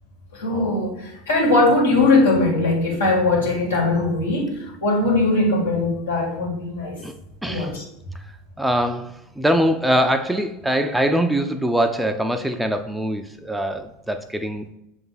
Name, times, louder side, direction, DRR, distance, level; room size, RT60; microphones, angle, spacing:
voice 1, 0.3-7.0 7.5-7.8, left 2 dB, 85° left, -3 dB, 2.1 m, -20 dB
voice 2, 7.4-7.7 8.6-14.7, equal, 5° right, 7 dB, 0.5 m, -22 dB
6.8 x 3.5 x 4.1 m, 0.80 s
hypercardioid pair, 85°, 0 cm